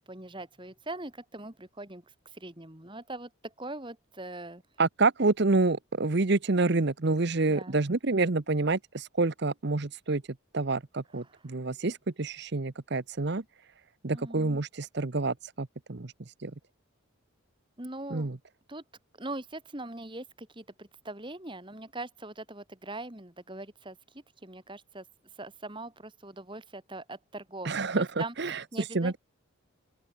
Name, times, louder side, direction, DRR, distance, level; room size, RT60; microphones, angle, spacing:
voice 1, 0.1-2.0 2.3-4.6 7.5-7.8 14.1-14.6 17.8-18.3 18.7-18.8 19.2-25.0 25.4-29.1, right 2 dB, 25° right, 2.4 m, -42 dB
voice 2, 4.8-10.2 10.5-13.4 14.0-16.1 16.4-16.5 18.1-18.4 27.6-29.2, right 3 dB, 50° right, 0.9 m, -28 dB
open air
head